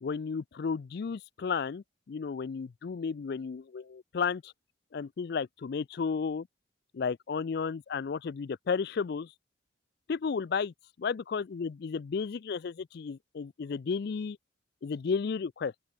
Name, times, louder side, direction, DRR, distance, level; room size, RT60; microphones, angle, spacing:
voice 1, 0.0-4.5 4.9-6.5 6.9-9.3 10.1-10.7 11.0-14.4 14.8-15.7, left 5 dB, 55° left, 0.4 m, -33 dB
open air
head